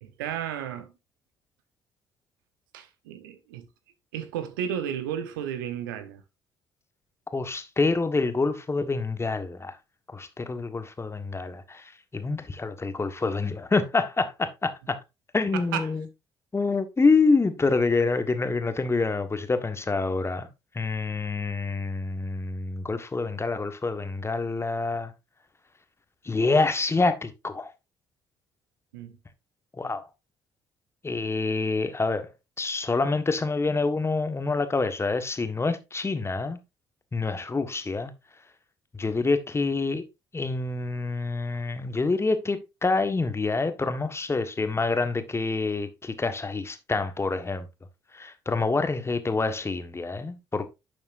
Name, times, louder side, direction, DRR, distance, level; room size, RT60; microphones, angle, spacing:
voice 1, 0.0-0.9 2.7-3.7 4.1-6.2 15.5-15.9 28.9-29.2, right 9 dB, 75° right, 1.0 m, -33 dB
voice 2, 7.3-9.7 10.1-11.8 12.1-15.0 15.3-16.0 16.5-20.5 20.7-25.1 26.2-27.7 29.8-30.0 31.0-32.3 32.6-36.6 37.1-38.1 39.0-40.1 40.3-47.7 48.1-50.7, left 3 dB, 25° left, 1.4 m, -26 dB
11.0 x 7.1 x 2.6 m
figure-of-eight pair, 50°, 11 cm